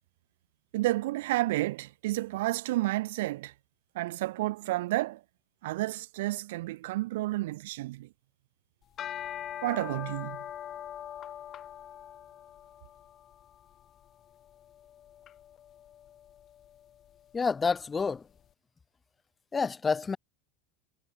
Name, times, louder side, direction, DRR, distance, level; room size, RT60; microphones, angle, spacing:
voice 1, 0.7-3.5 3.9-5.2 5.6-8.1 9.6-10.5, right 18 dB, 75° right, 0.7 m, -31 dB
sound 1, 8.8-18.2, left 10 dB, 35° left, 2.0 m, -44 dB
voice 2, 17.3-18.2 19.5-20.2, left 5 dB, 15° left, 1.0 m, -28 dB
supercardioid pair, 130°, 0 cm